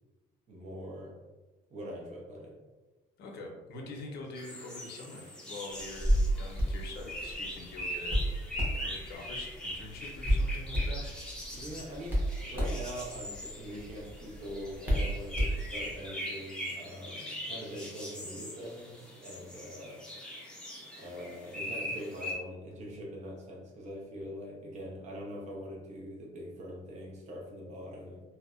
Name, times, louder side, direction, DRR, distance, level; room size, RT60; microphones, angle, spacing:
voice 1, 0.5-1.1 1.7-2.5 3.7-4.2 11.5-20.0 21.0-28.2, equal, 45° right, -2 dB, 0.7 m, -43 dB
voice 2, 3.2-11.0 11.5-12.0, left 2 dB, 70° left, 1 dB, 0.6 m, -45 dB
sound 1, 4.3-22.3, equal, 5° left, 0.6 m, -41 dB
Hands, 5.8-16.0, equal, 10° right, 1.0 m, -33 dB
2.6 x 2.1 x 2.4 m, 1.2 s
cardioid pair, 110°, 17 cm